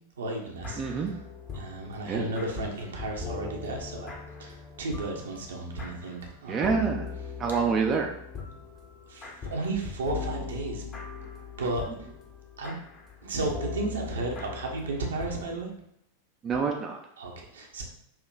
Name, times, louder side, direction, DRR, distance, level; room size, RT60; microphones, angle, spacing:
voice 1, 0.2-1.2 1.5-6.8 7.6-7.7 9.1-10.8 11.6-11.9 12.6-12.8 13.2-15.7 17.2-17.8, right 2 dB, 65° right, 0 dB, 0.9 m, -34 dB
sound 1, 0.6-15.6, left 5 dB, 30° left, 0.9 m, -40 dB
voice 2, 0.8-1.2 2.1-2.3 6.5-7.1 7.4-8.1 16.4-17.0, right 5 dB, 25° right, 1 dB, 0.4 m, -27 dB
5.9 x 2.9 x 2.4 m, 0.76 s
figure-of-eight pair, 90°, 0 cm